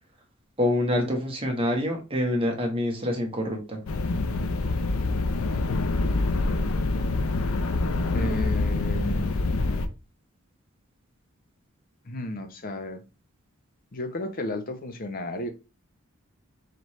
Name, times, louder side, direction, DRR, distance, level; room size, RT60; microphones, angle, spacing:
voice 1, 0.6-3.8, left 1 dB, 25° right, 1.1 m, -26 dB
sound 1, 3.9-9.9, left 2 dB, 75° left, 0.5 m, -26 dB
voice 2, 5.7-6.0 8.0-9.4 12.0-13.0 13.9-15.5, left 1 dB, 45° left, 0.7 m, -33 dB
4.1 x 3.3 x 3.0 m
head